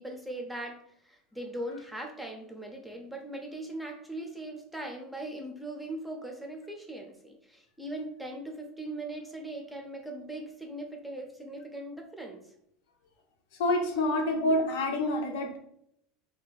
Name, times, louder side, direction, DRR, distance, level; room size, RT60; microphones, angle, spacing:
voice 1, 0.0-12.4 14.3-14.4, right 1 dB, 5° right, 2 dB, 0.5 m, -40 dB
voice 2, 13.6-15.6, left 1 dB, 85° left, 3 dB, 0.6 m, -27 dB
2.6 x 2.2 x 3.9 m, 0.74 s
supercardioid pair, 155°, 0 cm